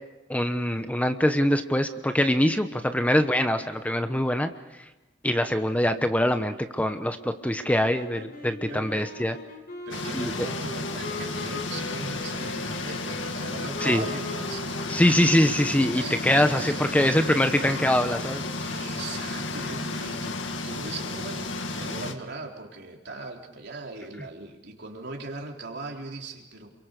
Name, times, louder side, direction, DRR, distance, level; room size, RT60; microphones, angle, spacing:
voice 1, 0.3-4.5 4.8-4.9 5.2-9.3 10.1-10.3 13.8-14.0 14.9-18.4, left 1 dB, 10° left, 8 dB, 1.0 m, -23 dB
sound 1, 7.6-18.1, left 2 dB, 50° left, 4.2 m, -40 dB
voice 2, 8.7-9.1 9.9-14.7 15.9-17.2 17.7-17.9 18.6-20.4 20.6-26.7, right 3 dB, 60° right, 1 dB, 4.2 m, -39 dB
sound 2, 9.9-22.1, left 2 dB, 80° left, 2.0 m, -33 dB
28.5 x 23.5 x 6.7 m, 1.1 s
head